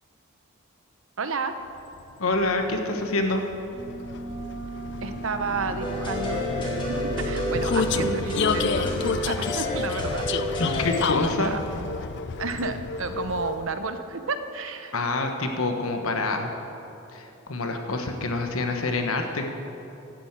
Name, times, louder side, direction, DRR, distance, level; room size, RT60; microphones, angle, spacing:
voice 1, 1.2-1.6 5.0-10.3 11.2-11.6 12.4-14.9, right 4 dB, 65° right, 9 dB, 0.7 m, -31 dB
Vehicle, 2.0-13.8, left 5 dB, 55° left, 0.4 m, -31 dB
voice 2, 2.2-3.4 10.6-11.5 14.9-16.5 17.1-19.5, left 2 dB, 75° left, 4 dB, 1.2 m, -26 dB
sound 1, 3.7-8.1, right 4 dB, 30° right, 1.7 m, -38 dB
sound 2, 5.8-11.0, equal, 20° left, 1.9 m, -30 dB
11.5 x 9.2 x 7.4 m, 2.9 s
head